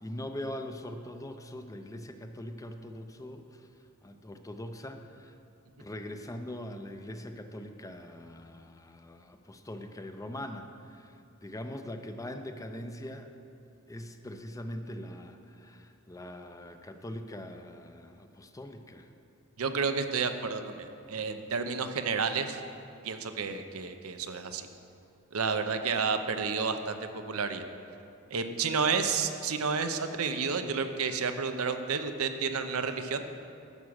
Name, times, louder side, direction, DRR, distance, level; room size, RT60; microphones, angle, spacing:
voice 1, 0.0-3.7 4.0-5.4 5.8-13.3 13.9-19.1 25.7-25.8, left 1 dB, 15° left, 6 dB, 0.5 m, -42 dB
voice 2, 19.6-22.6 23.0-24.7 25.3-27.7 28.3-33.2, right 5 dB, 80° right, 8 dB, 0.7 m, -31 dB
11.0 x 7.2 x 6.3 m, 2.6 s
head